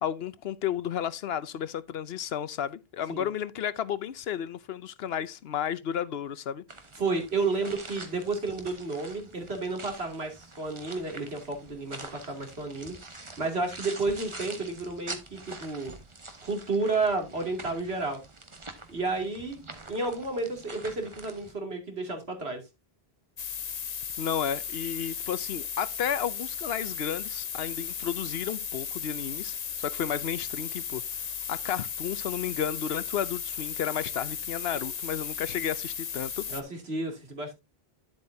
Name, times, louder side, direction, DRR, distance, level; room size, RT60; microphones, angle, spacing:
voice 1, 0.0-6.6 24.2-31.0 31.5-36.4, left 9 dB, 75° left, 0.9 m, -32 dB
sound 1, 6.7-21.5, right 2 dB, 30° right, 1.3 m, -45 dB
voice 2, 7.0-12.9 13.4-16.0 16.4-18.2 18.9-19.6 19.9-22.6 36.5-37.5, right 3 dB, 75° right, 2.9 m, -31 dB
sound 2, 23.4-36.6, left 7 dB, 45° left, 0.7 m, -35 dB
10.5 x 7.7 x 2.7 m
omnidirectional pair, 1.1 m